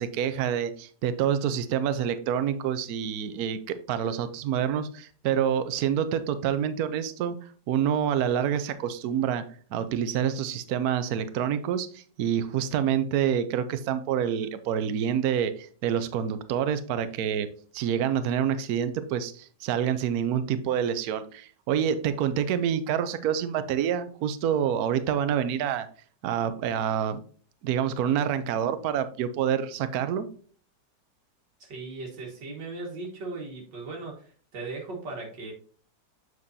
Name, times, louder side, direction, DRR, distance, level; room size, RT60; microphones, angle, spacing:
voice 1, 0.0-7.4 7.7-9.4 9.7-17.5 17.7-25.9 26.2-27.2 27.6-30.3, right 9 dB, 70° right, 11 dB, 1.1 m, -27 dB
voice 2, 31.6-35.5, right 3 dB, 85° right, -2 dB, 2.2 m, -38 dB
7.4 x 6.2 x 2.7 m, 0.43 s
omnidirectional pair, 1.9 m